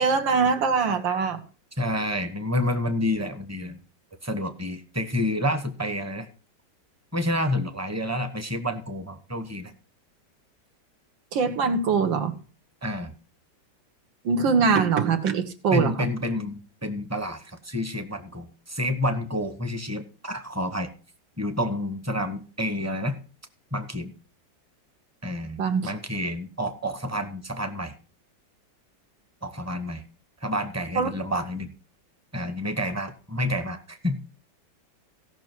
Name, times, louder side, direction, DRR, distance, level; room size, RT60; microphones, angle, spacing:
voice 1, 0.0-1.4 11.3-12.4 14.2-16.1 25.6-25.9 31.0-31.1, right 5 dB, 80° right, 8 dB, 2.1 m, -23 dB
voice 2, 1.8-3.8 4.2-6.3 7.1-9.7 12.8-13.1 15.7-20.9 21.4-23.2 23.7-24.1 25.2-27.9 29.4-30.0 30.4-31.7 32.3-34.2, left 1 dB, 10° right, 9 dB, 0.8 m, -29 dB
17.0 x 6.0 x 4.5 m, 0.38 s
omnidirectional pair, 2.0 m